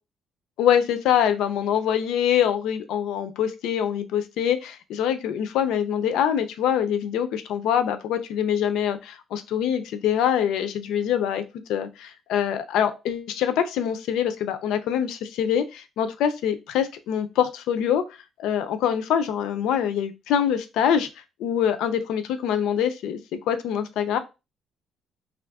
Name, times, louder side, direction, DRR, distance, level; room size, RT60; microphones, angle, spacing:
voice 1, 0.6-11.4 11.7-18.0 18.4-21.1 21.4-24.2, left 9 dB, 85° left, 10 dB, 0.4 m, -24 dB
2.7 x 2.5 x 3.4 m, 0.27 s
cardioid pair, 165°, 0 cm